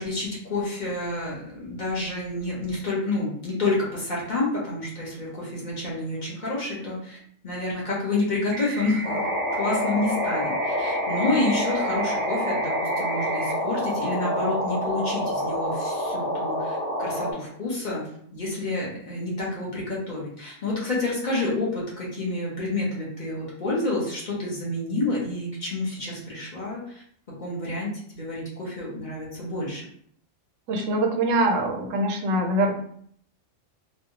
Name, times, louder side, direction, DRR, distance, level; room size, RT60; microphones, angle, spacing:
voice 1, 0.0-7.2 7.4-9.2 9.5-18.0 18.3-27.0 27.4-29.8, left 2 dB, 40° left, -6 dB, 1.1 m, -29 dB
sound 1, 8.5-13.5, right 2 dB, 60° right, 0.5 m, -34 dB
sound 2, 9.0-17.3, equal, 80° left, 1.3 m, -27 dB
voice 2, 30.7-32.7, right 1 dB, 90° right, 3 dB, 1.0 m, -23 dB
3.2 x 2.3 x 2.7 m, 0.64 s
omnidirectional pair, 1.3 m